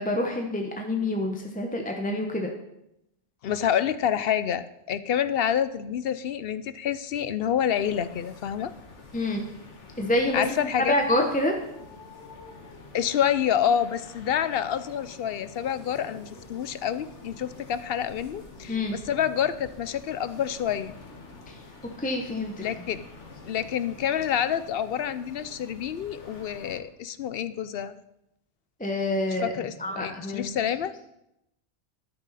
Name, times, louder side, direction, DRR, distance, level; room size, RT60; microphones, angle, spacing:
voice 1, 0.0-2.5 9.1-9.4 10.0-10.6 10.9-11.5 18.7-19.0 21.5-21.6 22.0-22.6 28.8-29.5 29.8-30.5, left 1 dB, 10° left, 2 dB, 0.9 m, -27 dB
voice 2, 3.4-8.7 10.3-10.9 12.9-20.9 22.6-23.0 23.5-27.9 29.4-30.9, left 9 dB, 65° left, 14 dB, 0.8 m, -28 dB
sound 1, 7.7-26.8, left 3 dB, 90° left, 1.8 m, -47 dB
12.0 x 10.0 x 4.1 m, 0.84 s
omnidirectional pair, 1.2 m